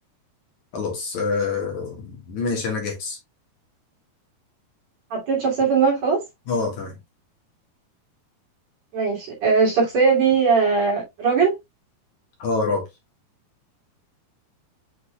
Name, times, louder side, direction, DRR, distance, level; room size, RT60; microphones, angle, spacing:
voice 1, 0.7-3.2 6.5-6.9 12.4-12.8, left 4 dB, 55° left, 2.7 m, -26 dB
voice 2, 5.1-6.2 8.9-11.5, right 5 dB, 50° right, 3.8 m, -19 dB
8.3 x 5.2 x 2.3 m
omnidirectional pair, 4.3 m